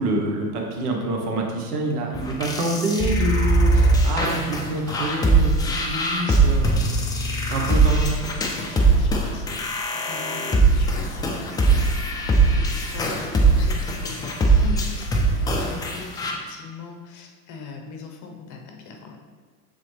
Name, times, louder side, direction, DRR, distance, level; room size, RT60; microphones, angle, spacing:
voice 1, 0.0-6.9 7.5-8.1 9.2-9.4, right 2 dB, 70° right, 0 dB, 1.3 m, -27 dB
sound 1, 2.1-16.3, right 2 dB, 10° left, 0.3 m, -21 dB
voice 2, 5.6-6.4 7.5-8.4 8.7-15.1 15.4-19.2, left 4 dB, 40° left, 2 dB, 0.9 m, -41 dB
7.3 x 4.0 x 3.3 m, 1.5 s
hypercardioid pair, 95°, 47 cm